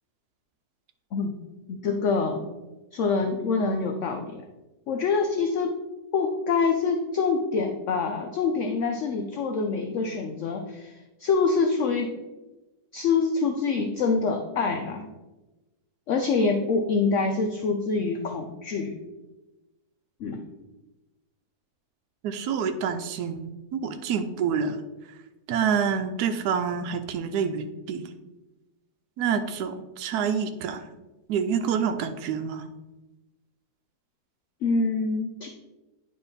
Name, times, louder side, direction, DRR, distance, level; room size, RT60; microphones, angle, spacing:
voice 1, 1.7-2.4 2.9-4.4 4.9-5.8 6.1-12.2 12.9-15.1 16.1-19.0 20.2-20.5 34.6-35.5, left 4 dB, 65° left, 4 dB, 0.8 m, -25 dB
voice 2, 22.2-24.8 25.5-28.1 29.2-30.8 31.3-32.7, right 7 dB, 80° right, 7 dB, 1.1 m, -27 dB
9.5 x 3.2 x 4.0 m, 1.1 s
omnidirectional pair, 1.7 m